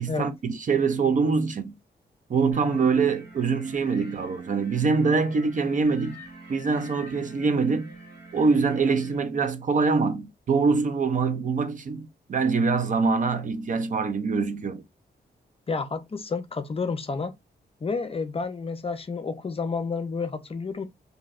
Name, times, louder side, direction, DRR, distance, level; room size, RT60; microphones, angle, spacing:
voice 1, 0.0-1.7 2.3-6.2 6.5-7.9 8.3-14.8, right 4 dB, 50° right, 0.5 m, -24 dB
sound 1, 2.5-9.2, right 1 dB, 75° right, 1.4 m, -45 dB
voice 2, 15.7-17.3 17.8-20.8, left 4 dB, 35° left, 0.5 m, -30 dB
3.1 x 2.7 x 2.4 m
wide cardioid pair, 105°, 17 cm